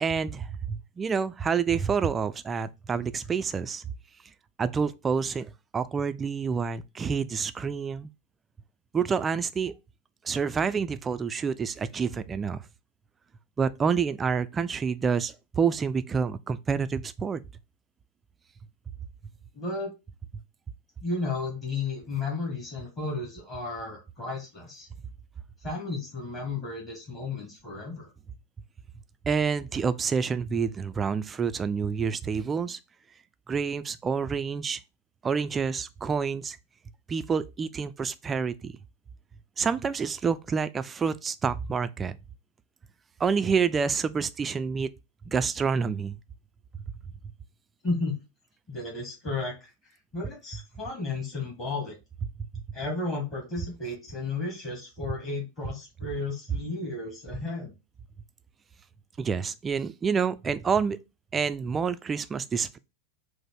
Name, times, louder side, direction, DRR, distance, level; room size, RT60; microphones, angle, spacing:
voice 1, 0.0-3.8 4.6-8.1 8.9-9.7 10.2-12.6 13.6-17.4 29.2-32.8 33.5-34.8 35.2-36.6 37.1-38.8 39.6-42.1 43.2-44.9 45.3-46.2 52.5-52.6 59.2-61.0 61.3-62.8, right 6 dB, 20° right, 0.3 m, -28 dB
voice 2, 19.5-19.9 21.0-24.9 25.6-28.1 47.8-48.2 48.7-49.7 50.1-52.0 52.7-57.7, left 3 dB, 30° left, 1.7 m, -33 dB
4.9 x 2.1 x 4.6 m
figure-of-eight pair, 90°, 0 cm